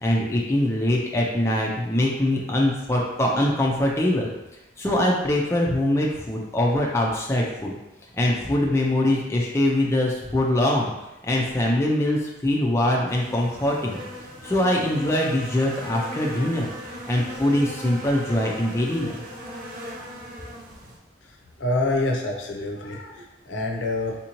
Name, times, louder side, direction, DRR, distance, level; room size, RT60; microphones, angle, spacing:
voice 1, 0.0-4.3 4.8-7.7 8.2-10.9 11.3-14.0 14.4-16.7 17.1-19.2, left 1 dB, 15° left, -2 dB, 0.4 m, -23 dB
sound 1, 13.1-21.0, right 1 dB, 45° right, 0.6 m, -38 dB
voice 2, 21.6-24.2, left 2 dB, 80° left, 1 dB, 0.6 m, -26 dB
3.5 x 2.7 x 2.9 m, 0.96 s
head